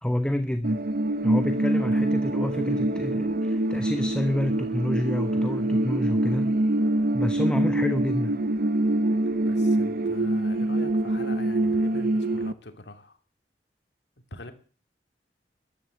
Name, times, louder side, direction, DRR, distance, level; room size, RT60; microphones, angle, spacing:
voice 1, 0.0-0.8 1.2-6.6 7.1-8.4, left 1 dB, 5° left, 8 dB, 0.9 m, -28 dB
sound 1, 0.6-12.5, right 1 dB, 55° right, 0.7 m, -25 dB
voice 2, 9.5-13.2 14.3-14.5, left 1 dB, 70° left, 7 dB, 2.5 m, -43 dB
13.5 x 11.0 x 8.0 m, 0.40 s
head